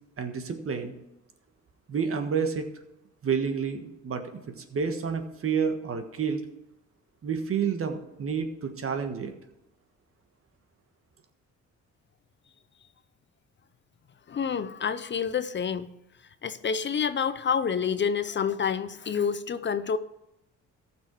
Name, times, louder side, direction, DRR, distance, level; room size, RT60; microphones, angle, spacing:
voice 1, 0.2-0.9 1.9-2.7 3.2-4.2 4.6-6.4 7.2-9.3, right 6 dB, 50° right, 6 dB, 1.5 m, -29 dB
voice 2, 14.3-16.0 16.4-20.0, left 7 dB, 40° left, 13 dB, 0.6 m, -28 dB
14.5 x 6.1 x 4.7 m, 0.90 s
cardioid pair, 90°, 30 cm